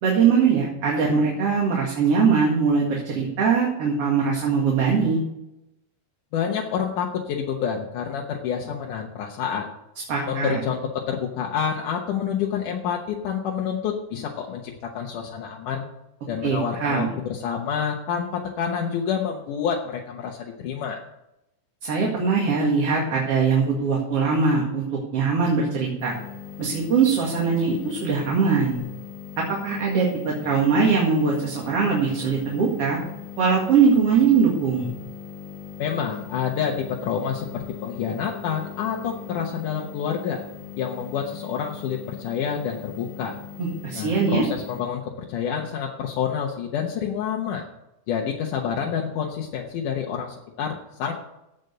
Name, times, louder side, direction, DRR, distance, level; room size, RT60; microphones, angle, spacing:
voice 1, 0.0-5.2 10.1-10.6 16.4-17.1 21.8-24.8 25.1-26.1 26.6-28.8 29.4-33.0 33.4-34.9 43.6-44.4, right 5 dB, 50° right, -2 dB, 2.9 m, -21 dB
voice 2, 6.3-9.7 10.3-15.9 16.3-21.0 35.8-40.4 40.8-43.4 43.9-47.6 48.1-51.1, left 7 dB, 80° left, 0 dB, 2.6 m, -28 dB
sound 1, 26.0-44.8, left 8 dB, 15° right, 2.9 m, -40 dB
16.0 x 5.3 x 6.8 m, 0.86 s
omnidirectional pair, 3.6 m